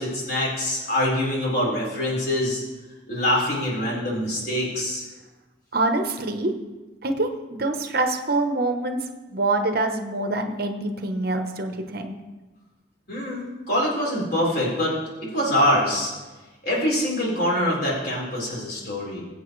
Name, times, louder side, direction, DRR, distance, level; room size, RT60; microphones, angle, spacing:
voice 1, 0.0-2.6 3.1-5.0 13.1-14.9 15.2-16.1 16.6-19.2, left 1 dB, 55° left, -4 dB, 4.2 m, -24 dB
voice 2, 5.7-6.5 7.0-9.0 9.3-12.1, right 2 dB, 55° right, 6 dB, 1.0 m, -25 dB
21.5 x 8.3 x 3.2 m, 1.2 s
head